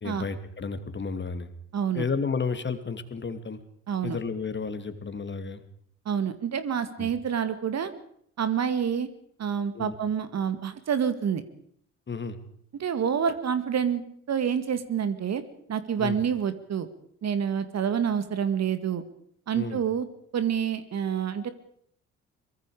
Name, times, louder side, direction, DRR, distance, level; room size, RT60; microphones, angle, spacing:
voice 1, 0.0-1.5 1.9-3.6 4.0-5.6 7.0-7.1 9.7-9.9 12.1-12.4 16.0-16.2 19.5-19.8, left 5 dB, 30° left, 10 dB, 2.6 m, -32 dB
voice 2, 1.7-2.1 3.9-4.2 6.1-7.9 8.4-9.1 9.4-11.4 12.7-15.4 15.7-16.9 17.2-19.0 19.5-20.1 20.3-21.5, right 8 dB, 50° right, 12 dB, 2.1 m, -27 dB
23.5 x 22.5 x 5.0 m, 0.66 s
hypercardioid pair, 50°, 35 cm